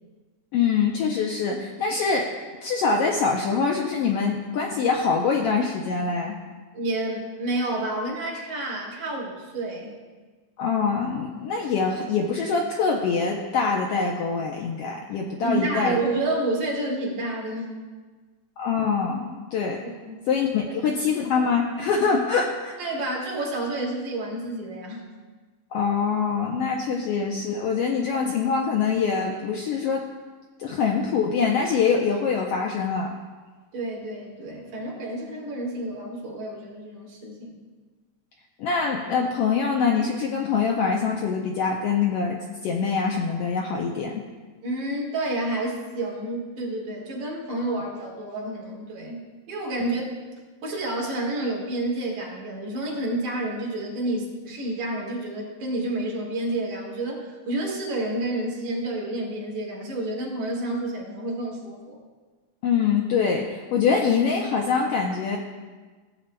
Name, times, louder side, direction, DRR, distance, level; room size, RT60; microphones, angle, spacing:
voice 1, 0.5-2.3 2.6-6.4 10.6-16.0 18.6-19.8 20.3-22.8 25.7-30.0 30.6-33.1 38.6-44.1 62.6-65.4, left 5 dB, 80° left, 0 dB, 1.3 m, -24 dB
voice 2, 6.7-10.0 15.4-17.8 20.1-20.3 20.7-21.3 22.8-25.1 33.7-37.6 44.6-50.1 50.6-62.0, right 1 dB, 65° right, -2 dB, 3.0 m, -30 dB
16.0 x 8.2 x 2.2 m, 1.4 s
omnidirectional pair, 3.5 m